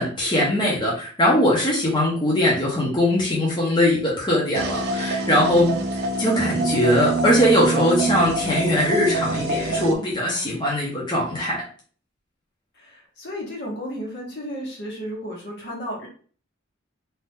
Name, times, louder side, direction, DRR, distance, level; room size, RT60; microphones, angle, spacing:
voice 1, 0.0-5.7 6.2-11.6, left 1 dB, 20° left, -5 dB, 0.8 m, -21 dB
sound 1, 4.5-10.0, right 2 dB, 55° right, 0.5 m, -25 dB
voice 2, 9.9-10.5 12.7-16.1, equal, 55° left, -3 dB, 1.3 m, -34 dB
2.7 x 2.5 x 3.5 m, 0.42 s
head